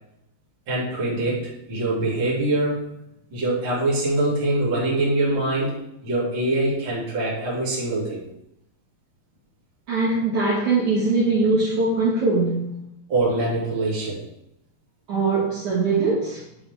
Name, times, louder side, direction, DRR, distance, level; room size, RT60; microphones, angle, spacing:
voice 1, 0.7-2.9 3.3-5.8 6.0-8.2 13.1-14.2, right 2 dB, 30° right, -6 dB, 2.8 m, -24 dB
voice 2, 9.9-12.7 15.1-16.4, right 3 dB, 55° right, -8 dB, 2.7 m, -21 dB
8.9 x 5.3 x 3.5 m, 0.82 s
omnidirectional pair, 4.7 m